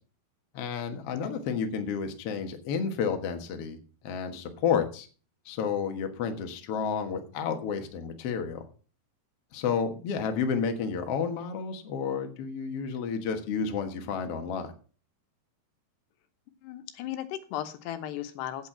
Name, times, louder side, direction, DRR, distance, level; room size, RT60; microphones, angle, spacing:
voice 1, 0.5-3.8 4.0-5.1 5.4-8.6 9.5-14.7, left 6 dB, 60° left, 6 dB, 1.5 m, -31 dB
voice 2, 16.6-18.7, left 12 dB, 80° left, 10 dB, 3.1 m, -36 dB
8.5 x 8.3 x 6.1 m, 0.38 s
omnidirectional pair, 4.8 m